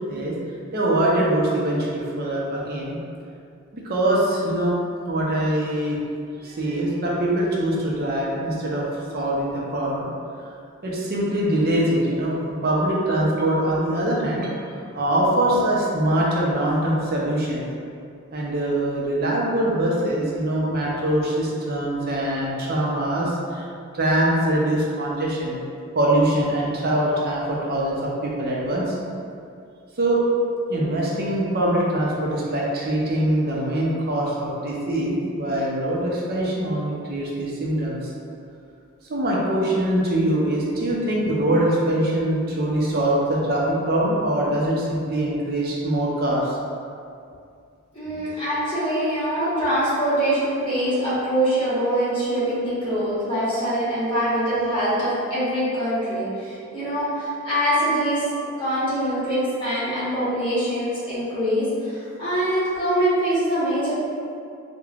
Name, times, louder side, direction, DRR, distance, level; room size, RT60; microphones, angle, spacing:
voice 1, 0.7-3.0 3.7-4.8 5.1-6.0 6.3-8.8 9.1-10.1 10.8-17.7 18.3-23.6 23.9-25.6 25.9-29.0 30.0-30.2 30.7-38.0 39.1-46.6, right 1 dB, 45° right, -4 dB, 0.5 m, -23 dB
voice 2, 47.9-58.2 58.6-63.9, right 1 dB, 25° left, -12 dB, 1.1 m, -24 dB
3.2 x 2.1 x 2.3 m, 2.4 s
head